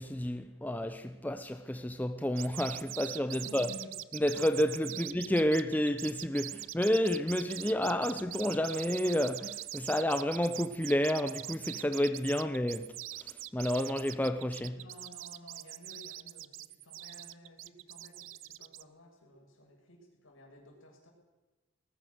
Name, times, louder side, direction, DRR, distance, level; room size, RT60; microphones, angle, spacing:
voice 1, 0.0-3.7 4.1-14.8, left 1 dB, 10° left, 0.6 m, -30 dB
sound 1, 2.4-18.8, right 15 dB, 70° right, 0.6 m, -42 dB
voice 2, 3.3-3.9 4.9-5.1 14.8-21.1, left 1 dB, 70° left, 7.2 m, -54 dB
21.0 x 20.0 x 6.8 m
head